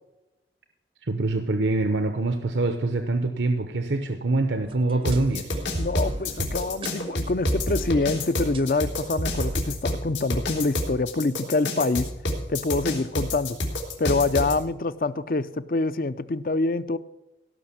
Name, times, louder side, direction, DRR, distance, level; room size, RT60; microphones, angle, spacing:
voice 1, 1.0-5.5, right 2 dB, 85° right, 7 dB, 0.9 m, -25 dB
sound 1, 4.6-9.7, right 1 dB, 30° right, 0.6 m, -33 dB
sound 2, 5.0-14.5, left 2 dB, 90° left, 3.5 m, -28 dB
voice 2, 5.8-12.1 12.5-13.6 14.0-17.0, left 3 dB, 50° left, 15 dB, 0.5 m, -26 dB
17.5 x 6.0 x 7.2 m, 0.99 s
head